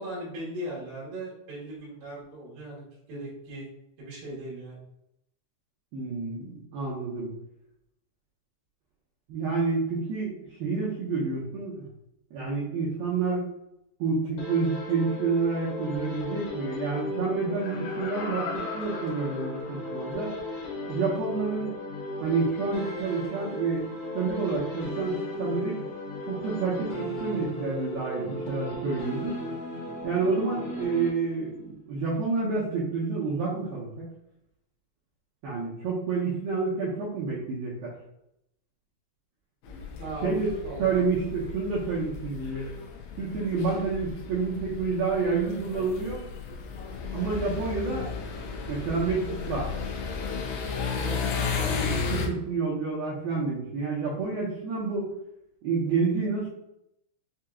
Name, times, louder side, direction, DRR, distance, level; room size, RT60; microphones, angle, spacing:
voice 1, 0.0-3.7 4.0-4.8 40.0-40.4 40.6-41.0 50.9-51.6, right 1 dB, 65° right, -5 dB, 3.3 m, -38 dB
voice 2, 5.9-7.3 9.3-10.3 10.6-11.9 12.3-13.5 14.0-20.3 20.9-21.8 22.2-23.9 24.1-25.8 26.2-29.4 30.0-34.1 35.4-37.9 40.2-40.5 40.8-42.7 43.2-46.2 47.1-48.1 48.7-49.7 51.7-55.1 55.6-56.5, right 4 dB, 80° right, -6 dB, 2.1 m, -29 dB
sound 1, 14.4-31.6, left 1 dB, 55° left, 2.1 m, -36 dB
Laughter, 17.4-20.1 20.6-20.7, left 4 dB, 75° left, 3.1 m, -39 dB
sound 2, 39.6-52.3, left 5 dB, 90° left, 2.1 m, -34 dB
7.2 x 2.8 x 2.4 m, 0.80 s
omnidirectional pair, 5.4 m